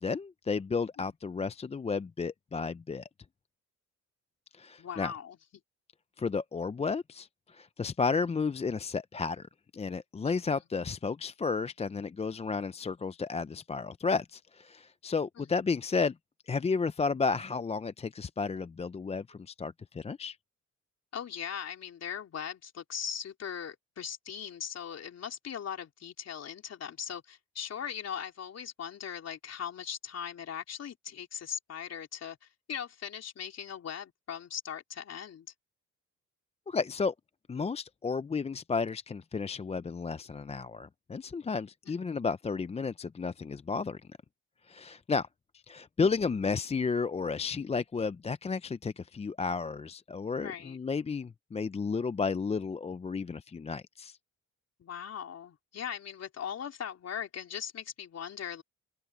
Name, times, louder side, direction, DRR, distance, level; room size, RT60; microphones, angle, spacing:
voice 1, 0.0-3.1 4.5-5.1 6.2-16.1 16.5-20.4 36.7-37.1 37.5-44.0 44.7-45.3 45.5-54.2, left 4 dB, 20° left, 0.5 m, -32 dB
voice 2, 4.8-5.4 10.2-10.6 15.4-15.5 21.1-32.4 32.7-35.5 50.4-50.8 54.8-58.6, left 8 dB, 55° left, 3.6 m, -39 dB
cardioid pair, 90°, 30 cm